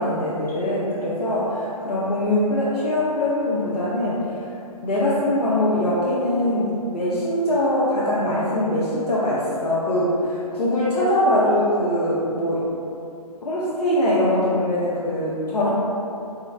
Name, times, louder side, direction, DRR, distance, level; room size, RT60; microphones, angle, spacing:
voice 1, 0.0-4.3 4.8-12.7 13.4-15.7, left 1 dB, 80° left, -8 dB, 0.6 m, -22 dB
3.7 x 2.0 x 2.5 m, 2.6 s
figure-of-eight pair, 140°, 20 cm